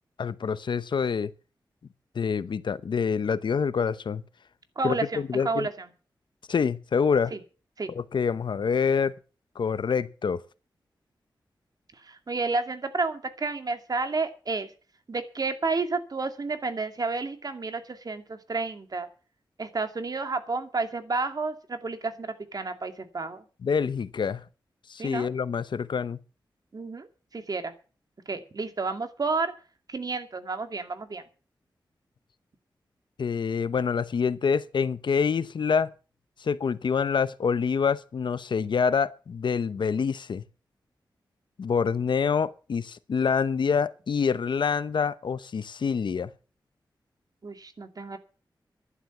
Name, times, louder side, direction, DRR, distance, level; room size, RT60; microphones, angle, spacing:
voice 1, 0.2-1.3 2.1-4.2 4.8-5.7 6.5-7.3 8.0-9.1 9.6-10.4 23.6-24.4 24.9-26.2 33.2-35.9 36.4-40.4 41.6-46.3, left 6 dB, 75° left, 0.9 m, -26 dB
voice 2, 4.8-5.9 7.3-7.4 7.8-7.9 12.0-14.7 15.1-19.1 19.6-23.4 25.0-25.3 26.7-27.7 28.3-29.5 29.9-31.2 47.4-48.2, right 3 dB, 55° right, 2.3 m, -31 dB
11.5 x 11.5 x 7.2 m
wide cardioid pair, 75°, 8 cm